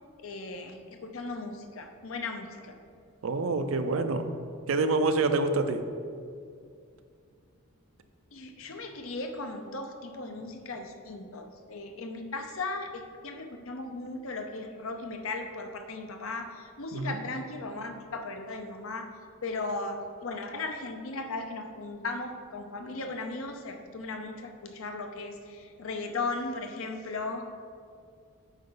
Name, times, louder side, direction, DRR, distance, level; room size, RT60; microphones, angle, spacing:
voice 1, 0.2-2.8 8.3-19.1 19.4-27.5, left 3 dB, 70° left, 5 dB, 0.7 m, -37 dB
voice 2, 3.2-4.4 4.7-5.8 16.9-17.2, right 3 dB, 70° right, 8 dB, 0.5 m, -27 dB
8.9 x 5.6 x 3.9 m, 2.3 s
head